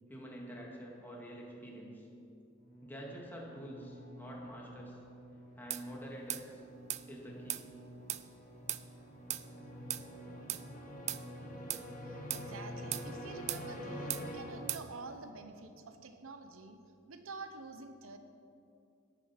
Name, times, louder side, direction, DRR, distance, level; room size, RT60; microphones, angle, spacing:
voice 1, 0.1-2.1 2.8-5.0 5.6-6.6 7.1-7.7, equal, 10° left, -3 dB, 2.3 m, -47 dB
sound 1, 2.6-15.2, equal, 40° left, 1.8 m, -47 dB
sound 2, 5.7-5.9 6.3-6.5 6.9-7.0 7.5-7.7 8.1-8.3 8.7-8.8 9.3-9.5 9.9-10.1 10.5-10.6 11.1-11.2 11.7-11.9 12.3-12.5 12.9-13.1 13.5-13.7 14.1-14.3 14.7-14.9, right 13 dB, 35° right, 0.3 m, -37 dB
voice 2, 12.0-16.8 17.1-18.2, right 3 dB, 85° right, 7 dB, 0.9 m, -48 dB
13.0 x 10.5 x 5.9 m, 2.6 s
head